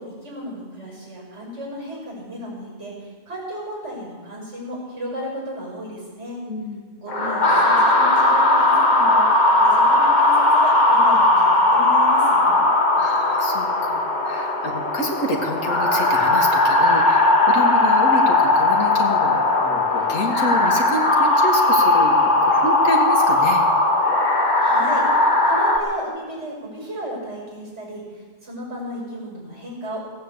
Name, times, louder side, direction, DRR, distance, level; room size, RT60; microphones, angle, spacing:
voice 1, 0.0-6.4 7.0-9.2 9.6-12.6 24.3-30.1, equal, 65° right, -3 dB, 6.1 m, -34 dB
voice 2, 6.5-6.9 13.0-23.6, equal, 85° left, 2 dB, 2.4 m, -28 dB
sound 1, 7.1-25.8, left 2 dB, 35° left, 1.8 m, -18 dB
17.5 x 9.3 x 8.1 m, 1.5 s
omnidirectional pair, 1.3 m